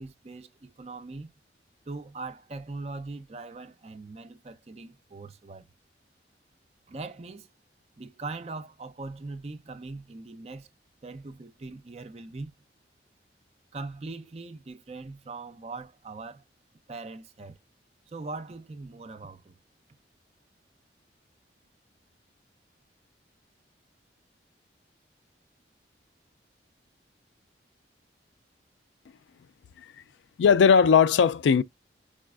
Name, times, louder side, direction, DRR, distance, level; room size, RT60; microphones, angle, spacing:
voice 1, 0.0-1.3 1.9-5.7 6.9-7.5 8.0-10.7 11.0-12.5 13.7-16.4 16.9-17.6 18.1-19.5, right 3 dB, 35° right, 0.4 m, -41 dB
voice 2, 30.4-31.6, left 6 dB, 80° left, 0.3 m, -19 dB
4.8 x 2.3 x 2.3 m
head